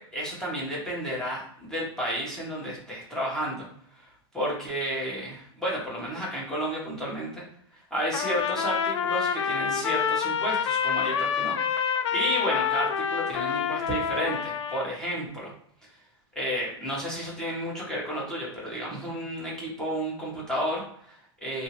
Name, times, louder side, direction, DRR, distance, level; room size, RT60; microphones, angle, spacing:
voice 1, 0.0-3.7 3.9-4.1 4.3-7.4 7.9-11.6 12.1-15.5 16.3-21.6, equal, 5° left, -6 dB, 1.1 m, -32 dB
Trumpet, 8.1-14.9, left 7 dB, 90° left, 0.4 m, -27 dB
2.8 x 2.7 x 2.9 m, 0.65 s
supercardioid pair, 145°, 15 cm